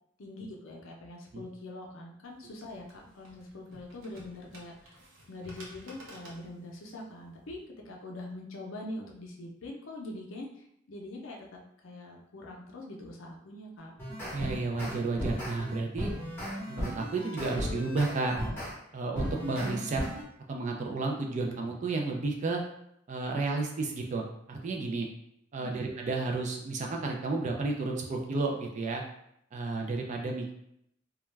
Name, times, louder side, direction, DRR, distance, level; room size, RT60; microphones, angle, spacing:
voice 1, 0.2-5.0 5.3-13.9 25.6-25.9, left 1 dB, 70° left, 0 dB, 0.5 m, -43 dB
sound 1, 2.3-7.6, right 1 dB, 80° right, 0.7 m, -53 dB
sound 2, 13.8-18.7 19.2-20.2, equal, 10° left, 0.9 m, -36 dB
voice 2, 14.3-16.1 16.7-18.4 18.9-20.0 20.5-22.6 23.1-25.1 25.5-29.0 29.5-30.5, right 3 dB, 35° right, 1 dB, 0.3 m, -32 dB
2.3 x 2.1 x 3.1 m, 0.76 s
head